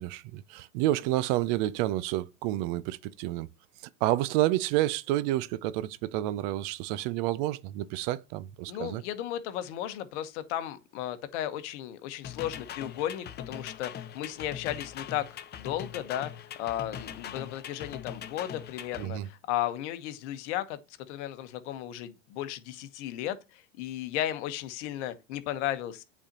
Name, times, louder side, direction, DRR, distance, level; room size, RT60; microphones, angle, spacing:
voice 1, 0.0-3.5 4.0-9.0 19.0-19.3, right 15 dB, 50° right, 0.5 m, -29 dB
voice 2, 8.7-20.8 21.1-26.0, left 12 dB, 60° left, 1.1 m, -35 dB
sound 1, 12.2-19.1, left 9 dB, 25° left, 0.7 m, -41 dB
8.7 x 4.3 x 2.8 m
hypercardioid pair, 110°, 39 cm